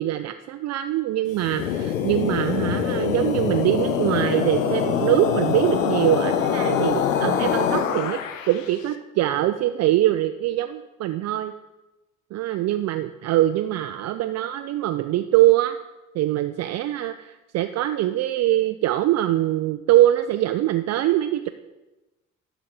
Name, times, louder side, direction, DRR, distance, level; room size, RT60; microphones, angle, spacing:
voice 1, 0.0-8.2 8.5-11.5 12.3-15.8 16.1-21.5, right 14 dB, 45° right, 9 dB, 0.5 m, -23 dB
sound 1, 1.3-8.7, left 8 dB, 80° left, 0.6 m, -24 dB
11.5 x 3.9 x 5.9 m, 1.1 s
figure-of-eight pair, 45°, 39 cm